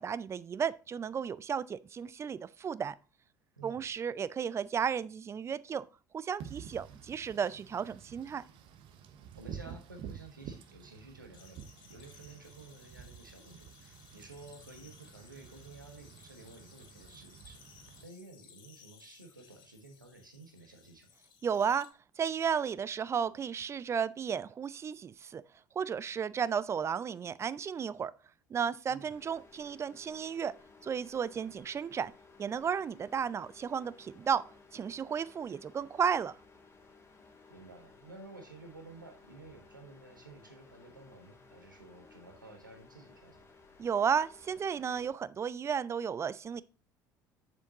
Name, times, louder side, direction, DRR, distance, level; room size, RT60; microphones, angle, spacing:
voice 1, 0.0-3.0 3.6-5.9 6.1-8.4 21.4-21.9 22.2-25.4 25.8-28.1 28.5-30.5 30.8-32.1 32.4-34.4 34.7-36.4 43.8-46.6, right 7 dB, 25° right, 0.4 m, -33 dB
Wind / Rain, 6.4-18.0, right 8 dB, 55° right, 0.9 m, -50 dB
voice 2, 9.3-17.6 18.0-21.1 28.9-29.1 37.5-43.5, right 3 dB, 85° right, 1.3 m, -52 dB
sound 1, 11.3-21.9, left 7 dB, 50° left, 1.4 m, -59 dB
sound 2, 29.1-45.1, left 4 dB, 25° left, 1.8 m, -58 dB
7.9 x 7.0 x 2.8 m
figure-of-eight pair, 60°, 10 cm